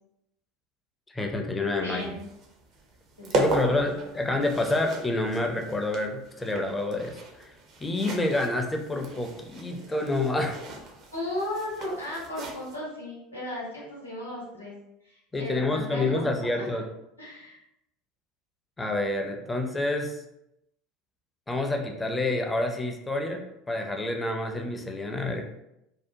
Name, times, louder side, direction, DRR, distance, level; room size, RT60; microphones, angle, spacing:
voice 1, 1.1-2.1 3.3-7.5 7.8-10.6 15.3-16.8 18.8-20.2 21.5-25.4, left 2 dB, 15° left, 3 dB, 0.4 m, -28 dB
voice 2, 1.8-2.2 3.2-3.9 11.1-14.7 15.0-16.7 17.2-17.6, left 1 dB, 90° left, -5 dB, 0.8 m, -36 dB
sound 1, 2.0-12.8, right 2 dB, 45° right, 0.5 m, -36 dB
2.7 x 2.1 x 2.5 m, 0.84 s
figure-of-eight pair, 70°, 0 cm